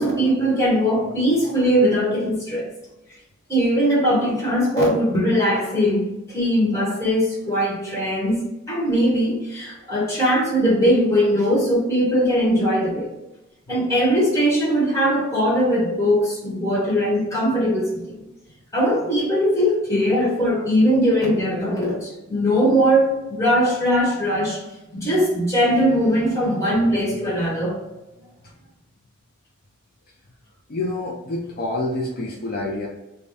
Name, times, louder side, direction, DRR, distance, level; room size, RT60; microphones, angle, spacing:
voice 1, 0.0-2.7 3.5-13.1 13.7-18.2 18.7-24.6 24.9-27.8, equal, 15° left, -6 dB, 1.3 m, -20 dB
voice 2, 9.8-10.1 28.4-28.5 30.7-32.9, left 2 dB, 45° left, -2 dB, 0.5 m, -28 dB
3.3 x 2.2 x 4.0 m, 0.97 s
head